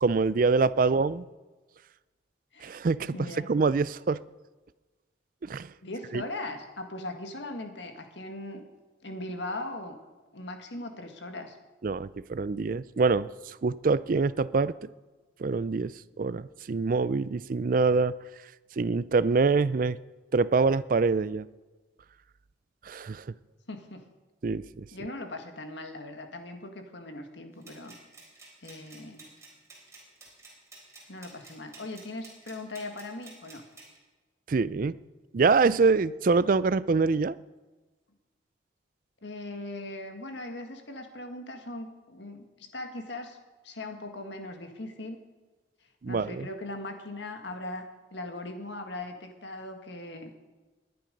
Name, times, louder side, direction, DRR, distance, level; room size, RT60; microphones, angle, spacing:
voice 1, 0.0-1.2 2.6-3.2 3.5-4.2 5.4-5.7 6.1-6.2 11.8-14.9 15.4-18.1 18.8-20.0 20.3-21.5 22.9-23.2 24.4-24.8 34.5-35.0 35.3-37.4 46.0-46.5, right 4 dB, 45° right, 17 dB, 0.4 m, -25 dB
voice 2, 3.1-3.5 5.8-8.6 9.0-10.0 10.3-11.6 23.7-24.0 24.9-28.0 28.6-29.3 31.1-33.6 39.2-43.4 43.6-45.2 46.1-47.9 48.1-50.3, left 2 dB, 70° left, 5 dB, 1.8 m, -39 dB
sound 1, 27.6-34.0, right 3 dB, 15° right, 4.0 m, -52 dB
20.5 x 10.5 x 5.3 m, 1.2 s
head